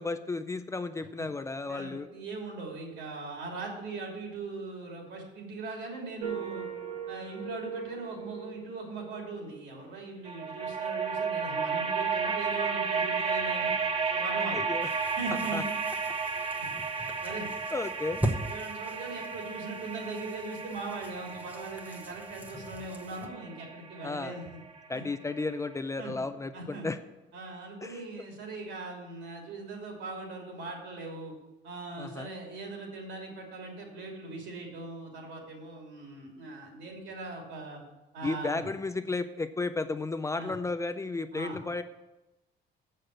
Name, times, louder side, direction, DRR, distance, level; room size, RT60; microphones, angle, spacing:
voice 1, 0.0-2.1 14.5-14.9 15.3-15.6 17.7-18.2 24.0-24.4 24.9-27.0 27.8-28.0 32.0-32.3 38.2-41.8, left 3 dB, 15° left, 10 dB, 0.4 m, -33 dB
voice 2, 1.7-6.6 7.1-13.7 14.1-14.6 15.2-15.6 16.6-16.7 17.2-17.5 18.5-24.4 24.9-25.0 26.0-26.1 26.5-26.9 27.3-31.3 31.6-37.8 38.1-38.6 40.4-40.5 41.3-41.6, right 3 dB, 85° right, 0 dB, 3.0 m, -40 dB
sound 1, 6.2-9.5 10.2-25.1, right 5 dB, 35° right, 1.0 m, -34 dB
sound 2, 14.8-23.3, right 1 dB, 10° right, 0.9 m, -40 dB
7.4 x 6.7 x 7.8 m, 1.0 s
cardioid pair, 155°, 19 cm